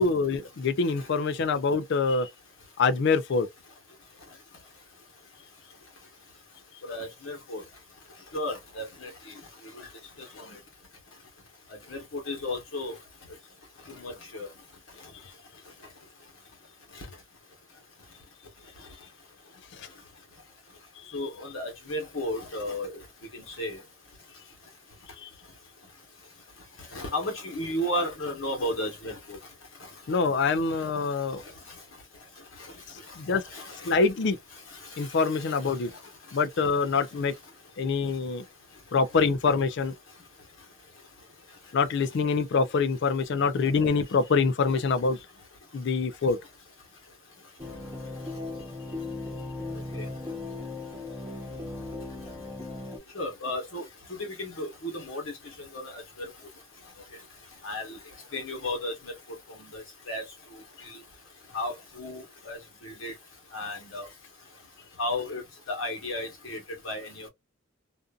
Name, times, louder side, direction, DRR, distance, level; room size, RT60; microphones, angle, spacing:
voice 1, 0.0-2.3 2.8-3.5 19.8-19.9 21.1-21.2 25.2-25.3 30.1-31.4 33.2-33.4 33.8-34.4 35.0-35.9 36.3-37.3 37.8-38.4 38.9-39.9 41.7-45.2 45.7-46.4, left 4 dB, 60° left, 0.4 m, -25 dB
voice 2, 6.9-7.6 8.3-9.1 10.4-10.5 11.9-12.0 12.3-12.9 13.9-14.5 21.1-22.9 23.3-23.8 26.9-29.4 33.5-33.6 50.0-50.1 53.1-53.8 54.2-55.2 55.9-56.3 57.6-58.0 58.3-59.1 59.7-60.2 61.5-62.6 62.8-63.1 63.5-64.1 65.0-65.4 65.7-66.6 66.8-67.3, left 1 dB, 85° left, 1.1 m, -33 dB
sound 1, 47.6-53.0, left 2 dB, 10° right, 0.9 m, -37 dB
2.5 x 2.5 x 2.3 m
head